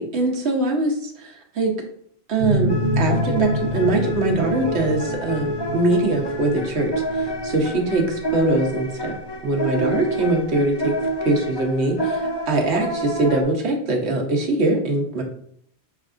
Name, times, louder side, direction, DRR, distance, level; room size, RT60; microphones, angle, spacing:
voice 1, 0.0-1.7 2.3-9.2 9.4-10.9 11.2-15.2, right 2 dB, 90° right, 0 dB, 1.2 m, -22 dB
sound 1, 2.4-11.8, equal, 55° right, 0.9 m, -28 dB
sound 2, 2.7-13.4, right 1 dB, 30° left, 0.5 m, -28 dB
5.7 x 3.4 x 2.5 m, 0.66 s
omnidirectional pair, 1.1 m